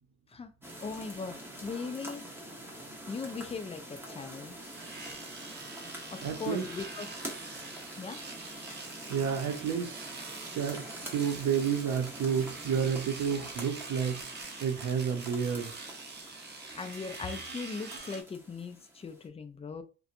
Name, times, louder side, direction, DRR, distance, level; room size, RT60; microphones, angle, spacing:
sound 1, 0.6-19.3, right 1 dB, 5° right, 0.9 m, -46 dB
voice 1, 0.8-2.2 3.1-4.5 6.1-7.2 8.0-8.2 16.5-19.8, left 4 dB, 20° left, 0.4 m, -39 dB
Domestic sounds home sounds, 4.6-18.2, right 3 dB, 35° right, 0.6 m, -45 dB
voice 2, 6.2-6.7 9.1-10.1 10.5-14.3 14.6-15.7, right 7 dB, 75° right, 0.7 m, -30 dB
2.8 x 2.2 x 2.5 m
cardioid pair, 90°, 30 cm